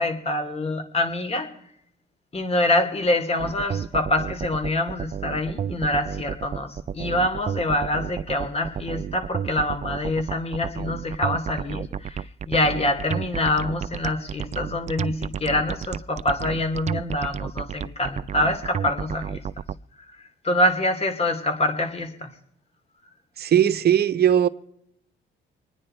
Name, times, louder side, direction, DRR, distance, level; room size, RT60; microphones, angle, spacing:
voice 1, 0.0-1.5 2.3-19.4 20.1-22.3, left 1 dB, 30° left, 2.7 m, -25 dB
sound 1, 3.4-19.7, right 8 dB, 35° right, 0.5 m, -31 dB
voice 2, 23.4-24.5, right 10 dB, 55° right, 0.9 m, -19 dB
25.5 x 9.9 x 4.4 m
cardioid pair, 90°, 20 cm